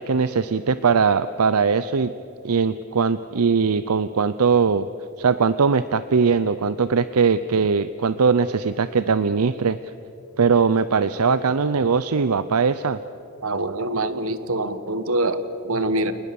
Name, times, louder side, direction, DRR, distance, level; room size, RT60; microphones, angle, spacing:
voice 1, 0.0-2.1 2.4-4.9 5.2-9.8 10.4-13.0, right 5 dB, 85° right, 14 dB, 0.6 m, -20 dB
voice 2, 13.4-16.1, right 2 dB, 70° right, 12 dB, 1.4 m, -25 dB
30.0 x 19.5 x 7.1 m, 2.8 s
head